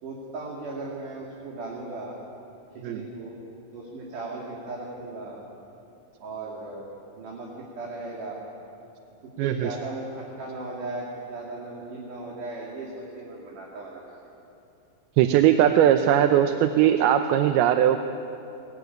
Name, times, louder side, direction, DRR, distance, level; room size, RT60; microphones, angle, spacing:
voice 1, 0.0-2.2 2.7-3.4 3.7-5.4 6.2-6.9 7.2-8.4 9.2-14.2 16.2-16.4, right 2 dB, 60° right, -3 dB, 4.0 m, -37 dB
voice 2, 9.4-9.8 15.2-18.0, right 10 dB, 90° right, 7 dB, 2.7 m, -20 dB
21.0 x 20.0 x 9.4 m, 2.7 s
omnidirectional pair, 4.4 m